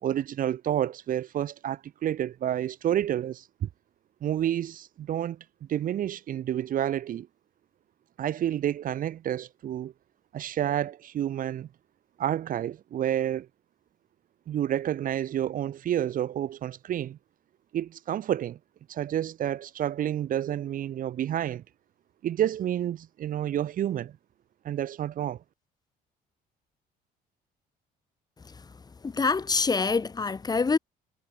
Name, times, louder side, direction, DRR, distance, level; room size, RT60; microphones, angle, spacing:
voice 1, 0.0-3.7 4.2-5.4 5.7-7.3 8.2-9.9 10.3-11.7 12.2-13.5 14.5-17.2 17.7-18.6 18.9-21.6 22.2-24.1 24.6-25.4, right 11 dB, 55° right, 1.2 m, -29 dB
voice 2, 29.0-30.8, left 4 dB, 25° left, 1.5 m, -25 dB
cardioid pair, 110°, 17 cm